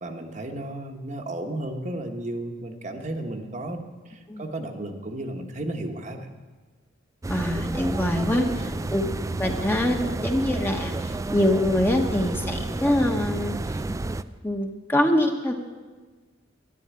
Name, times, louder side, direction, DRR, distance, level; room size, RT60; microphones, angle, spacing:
voice 1, 0.0-3.8 4.1-6.3 8.4-8.5, right 1 dB, 40° right, 4 dB, 1.2 m, -33 dB
sound 1, 7.2-14.2, right 2 dB, 15° right, 0.3 m, -30 dB
voice 2, 7.3-9.0 9.4-13.8 14.4-15.5, left 1 dB, 10° left, 3 dB, 1.2 m, -24 dB
12.5 x 11.0 x 8.4 m, 1.4 s
head